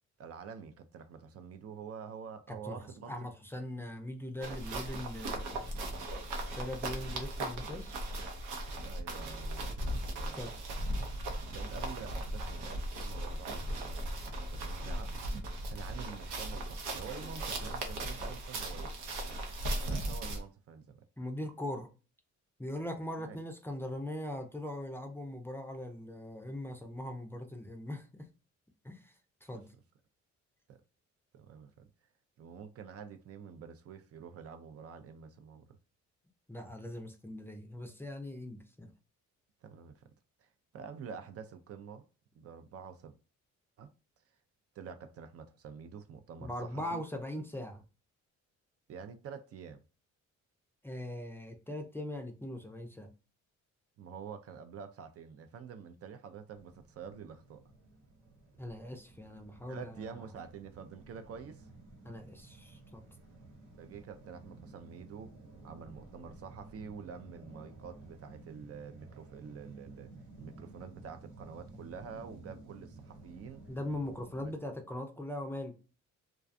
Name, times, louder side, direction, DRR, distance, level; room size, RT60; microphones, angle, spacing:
voice 1, 0.2-3.1 8.8-10.5 11.5-15.1 15.7-18.9 19.8-21.0 23.2-23.4 30.7-30.8 31.3-31.9 32.4-35.8 39.6-40.1 40.4-42.1 42.3-43.2 43.8-43.9 44.8-47.0 48.9-49.8 54.0-57.6 59.7-61.7 63.8-65.3 65.6-70.1 70.4-73.8 74.4-74.5, right 6 dB, 50° right, 0.4 m, -47 dB
voice 2, 3.1-5.8 6.5-7.9 10.3-10.5 21.2-21.9 22.6-28.3 28.8-29.1 29.4-29.7 36.5-38.9 46.4-47.8 50.8-53.1 58.6-60.1 62.0-63.0 73.7-75.8, left 1 dB, 10° left, 0.4 m, -40 dB
sound 1, 4.4-20.4, right 1 dB, 90° right, 0.7 m, -37 dB
sound 2, 56.5-74.6, right 2 dB, 75° right, 1.0 m, -54 dB
2.4 x 2.2 x 2.5 m
cardioid pair, 90°, 30 cm